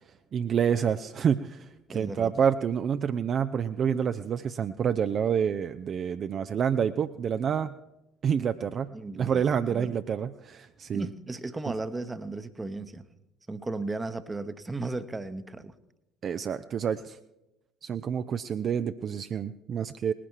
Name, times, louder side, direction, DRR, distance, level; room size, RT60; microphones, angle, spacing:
voice 1, 0.3-7.7 8.2-11.1 16.2-17.2 17.8-20.1, right 7 dB, 40° right, 10 dB, 0.4 m, -28 dB
voice 2, 1.9-2.3 8.9-10.0 10.9-13.0 13.5-15.7, right 2 dB, 15° right, 12 dB, 0.9 m, -35 dB
19.5 x 10.0 x 4.6 m, 0.92 s
figure-of-eight pair, 55°, 0 cm